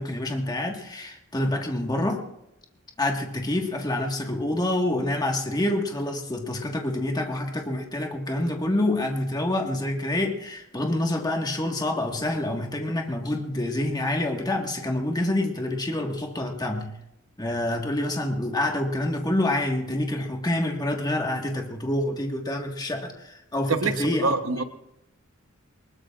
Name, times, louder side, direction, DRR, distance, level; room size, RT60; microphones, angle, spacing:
voice 1, 0.0-2.3 3.0-16.9 17.4-24.3, left 1 dB, 20° left, 2 dB, 1.6 m, -27 dB
voice 2, 23.7-24.6, right 3 dB, 80° right, 9 dB, 1.0 m, -25 dB
22.0 x 20.5 x 2.5 m, 0.84 s
head